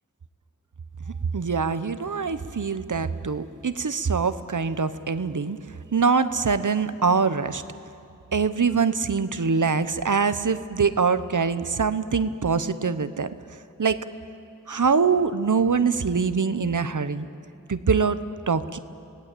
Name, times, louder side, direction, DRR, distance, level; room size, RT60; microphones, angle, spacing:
voice 1, 1.3-5.6 5.9-7.6 8.3-13.4 13.8-14.0 14.7-17.3 17.7-18.2 18.5-18.8, right 5 dB, 65° right, 13 dB, 0.9 m, -24 dB
27.0 x 17.5 x 8.4 m, 2.6 s
wide cardioid pair, 40°, 32 cm